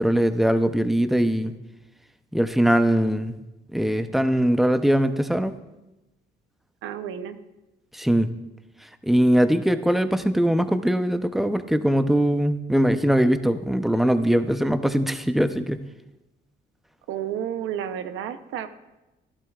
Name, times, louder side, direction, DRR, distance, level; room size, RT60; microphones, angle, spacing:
voice 1, 0.0-1.5 2.3-3.3 3.7-5.5 7.9-8.3 9.0-15.8, equal, ahead, 9 dB, 0.6 m, -21 dB
voice 2, 6.8-7.4 17.1-18.7, right 9 dB, 90° right, 10 dB, 0.7 m, -31 dB
15.0 x 12.0 x 2.4 m, 0.99 s
cardioid pair, 90°, 20 cm